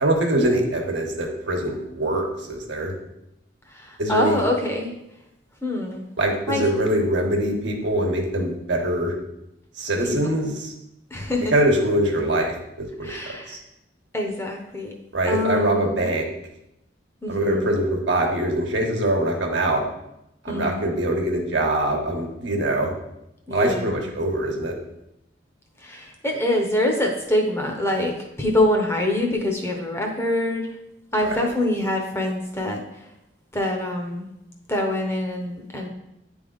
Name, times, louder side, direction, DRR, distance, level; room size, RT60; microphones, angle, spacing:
voice 1, 0.0-3.0 4.0-4.4 6.2-9.1 9.8-10.7 11.5-13.6 15.1-16.3 17.3-19.8 20.4-22.9 23.5-24.8, right 1 dB, 75° right, 1 dB, 1.2 m, -23 dB
voice 2, 3.7-4.9 5.6-6.1 6.5-6.7 10.1-10.2 11.1-11.5 13.0-13.6 14.1-14.9 15.3-16.1 17.2-17.7 20.5-20.8 23.5-24.1 25.8-30.7 31.1-33.1 33.5-34.3 34.7-35.9, left 1 dB, 15° left, 1 dB, 0.8 m, -25 dB
9.2 x 3.5 x 3.9 m, 0.86 s
head